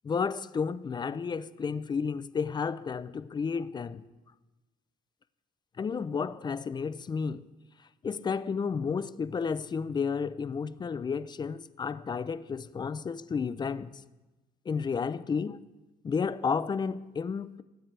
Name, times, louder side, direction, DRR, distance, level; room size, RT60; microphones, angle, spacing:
voice 1, 0.0-4.0 5.8-7.5 8.0-13.9 14.7-15.6 16.0-17.6, left 5 dB, 25° left, 0.5 m, -32 dB
22.0 x 9.2 x 3.3 m
cardioid pair, 110°, 17 cm